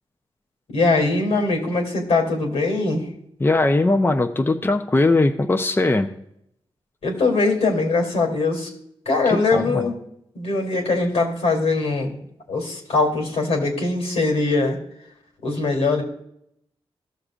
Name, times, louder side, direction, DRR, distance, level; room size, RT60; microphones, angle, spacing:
voice 1, 0.7-3.1 7.0-8.7 9.1-9.9 10.3-12.1 12.5-14.8 15.4-16.0, left 3 dB, 85° left, 2 dB, 2.5 m, -21 dB
voice 2, 3.4-6.1 9.3-9.9, left 2 dB, 20° left, 6 dB, 0.6 m, -20 dB
15.5 x 6.6 x 2.4 m, 0.75 s
cardioid pair, 75°, 10 cm